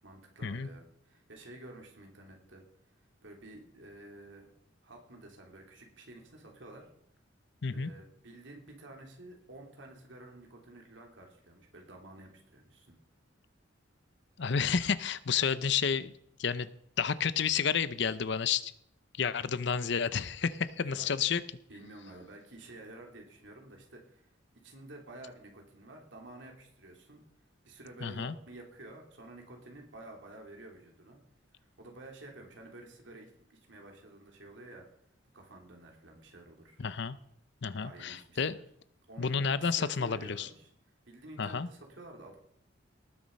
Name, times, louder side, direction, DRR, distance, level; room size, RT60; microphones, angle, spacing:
voice 1, 0.0-2.6 3.2-4.5 4.8-6.9 7.7-12.9 20.8-21.1 21.7-24.3 24.6-27.2 27.6-31.2 31.5-34.9 35.3-36.8 37.8-38.6 39.1-39.3 39.6-40.7 41.0-42.4, right 2 dB, 70° right, 1 dB, 3.2 m, -51 dB
voice 2, 14.4-16.1 16.4-16.7 17.0-18.7 19.2-21.4 28.0-28.4 36.8-37.2 37.6-38.6 39.2-40.5 41.4-41.7, left 6 dB, 60° left, 15 dB, 0.7 m, -30 dB
19.0 x 7.2 x 5.4 m, 0.72 s
head